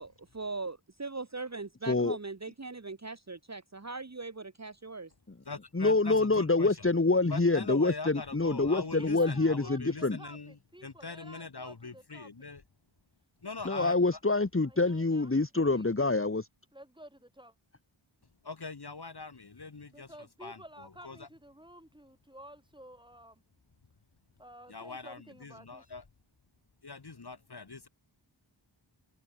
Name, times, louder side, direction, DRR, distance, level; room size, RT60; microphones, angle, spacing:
voice 1, 0.0-5.1, right 3 dB, 35° right, 1.5 m, -40 dB
voice 2, 1.9-2.2 5.3-5.4 5.7-10.2 13.6-16.5, left 3 dB, 25° left, 1.6 m, -26 dB
voice 3, 5.5-6.7 7.3-10.5 10.8-12.6 13.4-13.9 18.4-20.1 20.4-20.6 21.0-21.3 24.7-26.0 26.8-27.9, left 4 dB, 55° left, 2.1 m, -42 dB
voice 4, 9.0-12.5 14.7-15.3 15.7-15.9 16.7-17.5 19.9-23.4 24.4-25.8, right 1 dB, 10° right, 7.3 m, -52 dB
wide cardioid pair, 60°, 47 cm